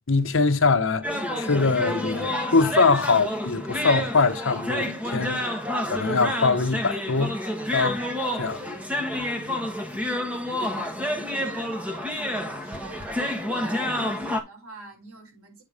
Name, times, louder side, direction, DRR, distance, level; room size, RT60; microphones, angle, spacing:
voice 1, 0.1-1.0 1.4-7.3 7.7-8.0 8.4-8.8, left 4 dB, 65° left, 0.9 m, -23 dB
sound 1, 1.0-14.4, left 1 dB, 5° right, 1.3 m, -29 dB
voice 2, 9.1-11.1 11.4-15.6, right 2 dB, 85° right, 4.7 m, -47 dB
8.8 x 4.1 x 5.1 m
head